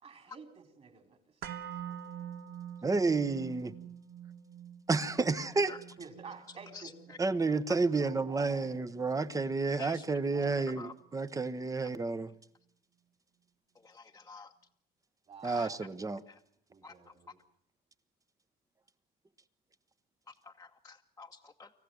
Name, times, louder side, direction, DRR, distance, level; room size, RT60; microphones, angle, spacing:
voice 1, 0.0-2.3 6.0-8.8 10.3-10.8 15.3-16.2 16.7-17.4, right 5 dB, 40° right, 4.3 m, -51 dB
sound 1, 1.4-9.5 9.8-9.9, right 9 dB, 65° right, 1.5 m, -46 dB
voice 2, 2.8-3.7 4.9-5.7 7.2-12.3 15.4-16.2, right 3 dB, 20° right, 1.1 m, -30 dB
voice 3, 6.7-7.2 9.8-10.0 10.8-10.9 11.8-11.9 13.8-14.5 15.4-15.7 16.3-16.4 16.8-17.1 20.4-21.7, left 4 dB, 15° left, 1.1 m, -49 dB
25.5 x 15.0 x 9.4 m
cardioid pair, 110°, 17 cm